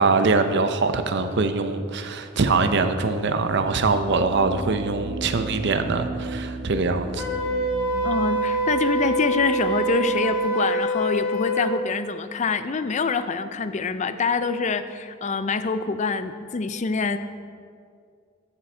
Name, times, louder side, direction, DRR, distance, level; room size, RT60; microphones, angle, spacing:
voice 1, 0.0-7.2, right 3 dB, 60° right, 8 dB, 0.6 m, -23 dB
sound 1, 3.1-10.3, right 2 dB, 80° right, 1.0 m, -37 dB
Wind instrument woodwind instrument, 7.2-11.7, right 1 dB, 10° right, 2.7 m, -25 dB
voice 2, 8.0-17.2, left 4 dB, 35° left, 11 dB, 0.4 m, -25 dB
13.5 x 6.0 x 4.4 m, 2.2 s
head